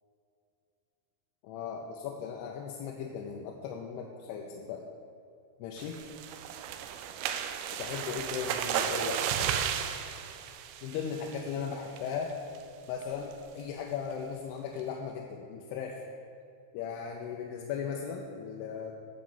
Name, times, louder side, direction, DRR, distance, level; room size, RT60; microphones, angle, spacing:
voice 1, 1.4-4.9 5.6-6.0 7.8-9.6 10.8-12.3 12.9-16.0 16.7-18.9, left 7 dB, 85° left, 0 dB, 2.7 m, -37 dB
sound 1, 5.8-11.5 12.0-12.2 12.6-12.7 13.0-13.3, right 9 dB, 85° right, 2.3 m, -34 dB
11.0 x 5.1 x 7.9 m, 2.6 s
omnidirectional pair, 4.7 m